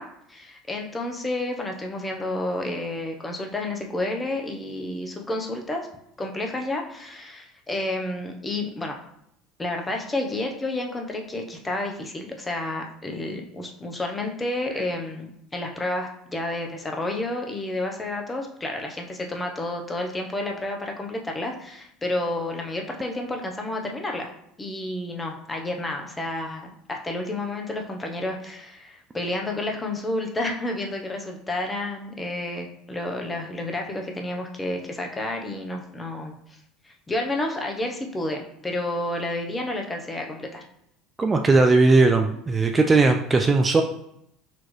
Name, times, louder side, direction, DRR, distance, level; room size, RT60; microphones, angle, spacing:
voice 1, 0.0-5.9 6.2-9.0 9.6-24.3 24.6-36.6 36.8-40.6, left 2 dB, 20° left, 2 dB, 0.9 m, -30 dB
voice 2, 41.2-43.8, right 3 dB, 25° right, 5 dB, 0.4 m, -18 dB
4.2 x 2.9 x 3.1 m, 0.76 s
hypercardioid pair, 70°, 0 cm